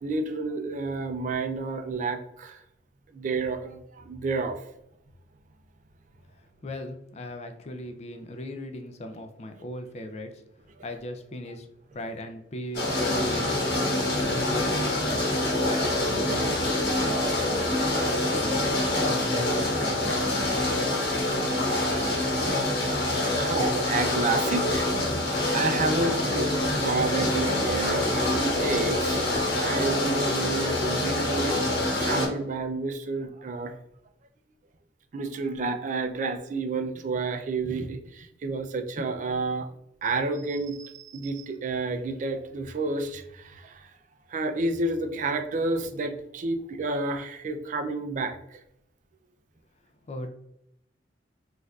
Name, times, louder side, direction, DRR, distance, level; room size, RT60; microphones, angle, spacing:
voice 1, 0.0-2.6 3.1-4.6 20.3-20.9 22.1-22.2 22.5-22.7 23.3-24.9 25.2-29.2 29.6-31.6 32.0-33.7 35.1-39.7 40.0-43.9 44.3-48.6, right 3 dB, 45° right, 7 dB, 0.3 m, -30 dB
voice 2, 6.6-10.4 10.8-11.7 11.9-13.5 14.1-17.9 18.2-18.6 19.0-20.2 50.1-50.3, left 1 dB, 35° left, 6 dB, 0.4 m, -38 dB
sound 1, 12.7-32.3, left 1 dB, 60° left, 1.1 m, -26 dB
4.4 x 2.5 x 2.3 m, 0.81 s
head